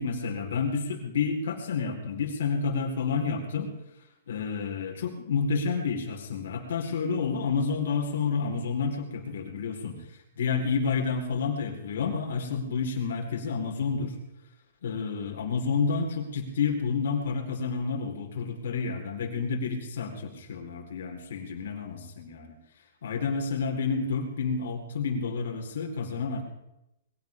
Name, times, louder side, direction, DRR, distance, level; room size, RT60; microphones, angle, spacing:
voice 1, 0.0-3.7 4.3-10.0 10.4-14.1 14.8-22.5 23.0-26.4, left 5 dB, 65° left, 2 dB, 4.1 m, -29 dB
22.0 x 16.0 x 3.6 m, 0.88 s
hypercardioid pair, 175°, 0 cm